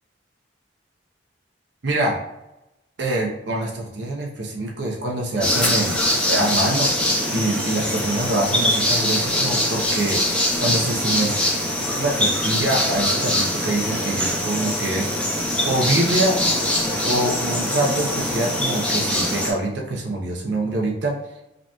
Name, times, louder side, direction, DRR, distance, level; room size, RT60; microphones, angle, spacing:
voice 1, 1.8-2.2 3.0-6.0 6.3-6.9 7.3-11.4 12.0-15.3 15.6-16.4 17.1-21.1, right 2 dB, 60° right, -1 dB, 0.6 m, -25 dB
sound 1, 5.4-19.5, left 1 dB, 5° left, 0.7 m, -23 dB
5.0 x 2.9 x 2.3 m, 0.93 s
head